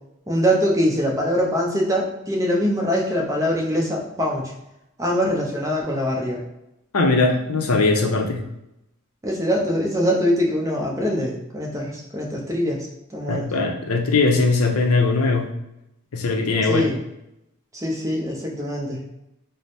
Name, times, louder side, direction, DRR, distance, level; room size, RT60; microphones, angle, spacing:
voice 1, 0.3-4.5 5.0-6.4 9.2-13.5 16.6-17.0 17.7-19.0, equal, 15° right, -2 dB, 0.6 m, -23 dB
voice 2, 6.9-8.4 13.3-15.5 16.1-16.9, left 3 dB, 80° left, 3 dB, 0.6 m, -20 dB
3.2 x 2.1 x 4.1 m, 0.86 s
head